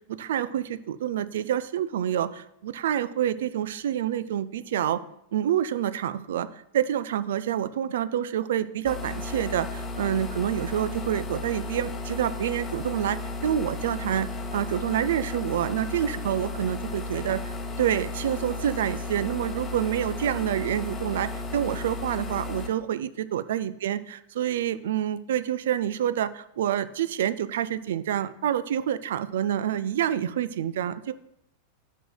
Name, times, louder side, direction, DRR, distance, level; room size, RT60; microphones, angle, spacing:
voice 1, 0.1-5.0 5.3-6.5 6.7-17.4 17.8-31.1, right 10 dB, 60° right, 14 dB, 0.3 m, -27 dB
sound 1, 8.8-22.7, left 2 dB, 20° left, 1.0 m, -34 dB
10.5 x 6.3 x 2.3 m, 0.81 s
figure-of-eight pair, 90°, 0 cm